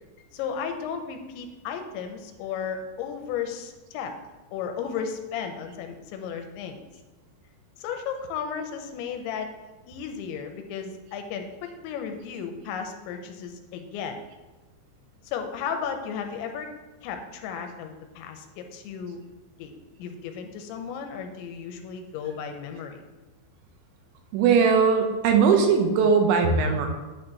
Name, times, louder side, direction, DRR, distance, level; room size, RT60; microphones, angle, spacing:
voice 1, 0.3-4.1 4.5-6.8 7.8-9.5 9.9-14.2 15.2-16.7 17.0-19.2 19.6-19.7 20.0-23.0, left 7 dB, 85° left, 5 dB, 2.9 m, -34 dB
voice 2, 24.3-26.9, right 5 dB, 80° right, 4 dB, 3.2 m, -20 dB
9.0 x 8.8 x 3.0 m, 1.2 s
omnidirectional pair, 5.3 m